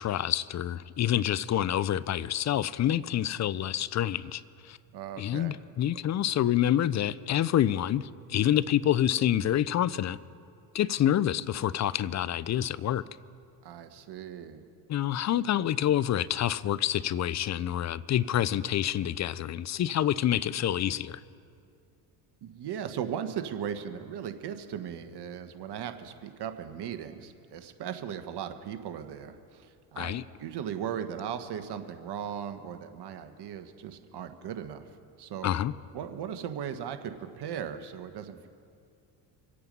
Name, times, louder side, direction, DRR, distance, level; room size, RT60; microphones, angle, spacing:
voice 1, 0.0-4.8 5.2-10.2 10.7-13.0 14.9-21.2 30.0-30.2 35.4-35.7, left 11 dB, 35° left, 0.5 m, -27 dB
voice 2, 4.9-5.6 13.6-14.6 22.4-34.9 35.2-35.5 35.9-38.5, right 8 dB, 55° right, 1.4 m, -37 dB
25.0 x 8.5 x 5.4 m
supercardioid pair, 70°, 47 cm